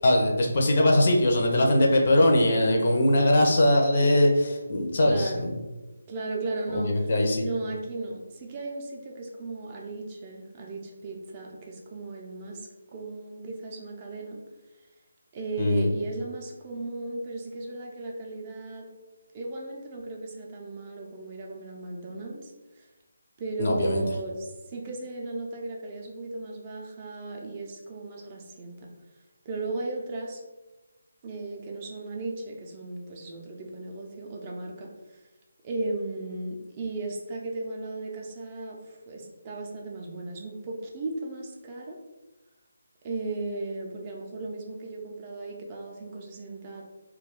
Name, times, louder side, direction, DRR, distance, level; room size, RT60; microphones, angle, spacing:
voice 1, 0.0-5.5 6.7-7.5 15.6-15.9 23.6-24.0, left 1 dB, 45° left, 1 dB, 0.5 m, -21 dB
voice 2, 5.0-5.6 6.1-7.1 7.4-14.4 15.3-18.9 19.3-22.9 23.4-28.9 29.5-30.4 31.2-35.2 35.6-42.0 43.0-46.8, right 2 dB, 25° right, -1 dB, 0.4 m, -36 dB
2.3 x 2.2 x 3.5 m, 1.1 s
figure-of-eight pair, 160°, 0 cm